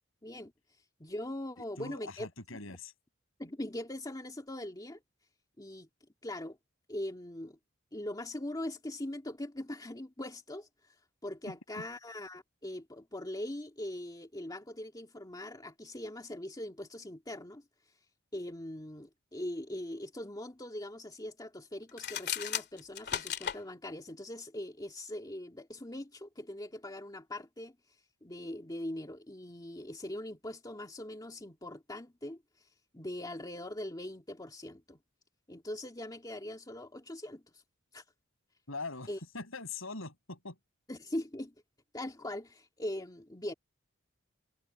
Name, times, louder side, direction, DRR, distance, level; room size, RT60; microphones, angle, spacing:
voice 1, 0.2-0.5 1.0-2.3 3.4-5.0 5.6-5.9 6.2-6.6 6.9-7.6 7.9-10.7 11.2-17.6 18.3-27.8 28.2-32.4 32.9-35.0 35.5-37.6 37.9-38.0 39.1-39.2 40.9-41.5 41.9-43.5, left 1 dB, 20° left, 2.3 m, -41 dB
voice 2, 1.8-2.9 11.8-11.9 38.7-40.6, left 3 dB, 70° left, 6.9 m, -42 dB
sound 1, 21.9-23.6, left 9 dB, 55° left, 2.4 m, -35 dB
head